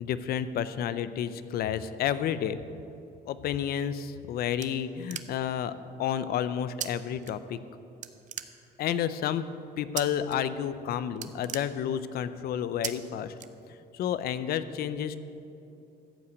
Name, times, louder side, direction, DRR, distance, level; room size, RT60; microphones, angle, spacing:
voice 1, 0.0-2.6 3.3-5.7 6.0-7.6 8.8-9.4 9.8-13.3 13.9-15.2, left 9 dB, 65° left, 14 dB, 0.5 m, -30 dB
sound 1, 4.3-5.6 6.8-6.9 7.2-7.7 8.0-9.0 10.0-10.4 10.7-10.8 11.1-12.3 12.8-12.9 13.4-14.0, right 11 dB, 45° right, 0.5 m, -38 dB
14.0 x 5.8 x 8.0 m, 2.7 s
cardioid pair, 180°, 17 cm